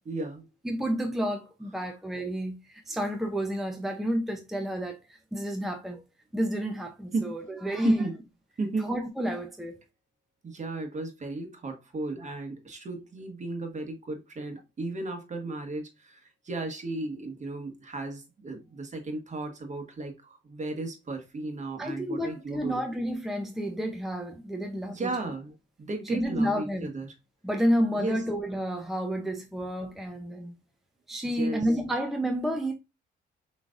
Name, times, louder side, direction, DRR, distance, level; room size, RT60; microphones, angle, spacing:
voice 1, 0.0-0.5 7.1-7.4 7.8-8.1 8.6-8.9 10.4-22.9 24.9-27.1 27.9-28.2 31.3-31.6, right 3 dB, 35° right, 1.4 m, -34 dB
voice 2, 0.6-6.0 6.3-8.0 8.8-9.8 21.8-25.1 26.0-26.9 27.4-30.5 31.1-32.7, equal, ahead, 0.7 m, -30 dB
5.9 x 3.2 x 2.5 m
cardioid pair, 90°, 20 cm